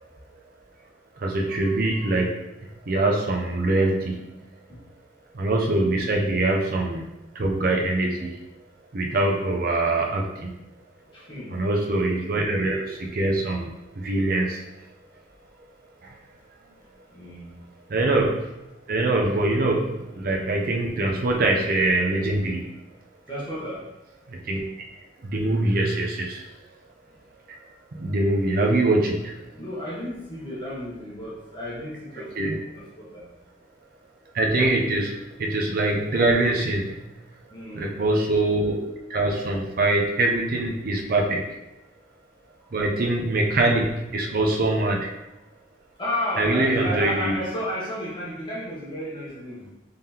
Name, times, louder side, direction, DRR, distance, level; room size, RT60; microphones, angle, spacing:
voice 1, 1.2-2.3 2.9-4.3 5.4-8.3 8.9-10.5 11.5-13.7 14.0-14.6 17.9-18.4 18.9-22.6 24.5-24.6 25.2-26.4 28.0-29.3 32.4-32.6 34.3-37.0 37.7-41.4 42.7-45.1 46.4-47.3, right 2 dB, 55° right, 0 dB, 0.5 m, -23 dB
voice 2, 11.1-11.7 17.1-17.6 23.3-23.8 29.5-32.3 32.7-33.3 37.5-37.9 46.0-49.7, left 1 dB, 25° left, -7 dB, 0.9 m, -32 dB
3.7 x 3.4 x 2.8 m, 0.95 s
head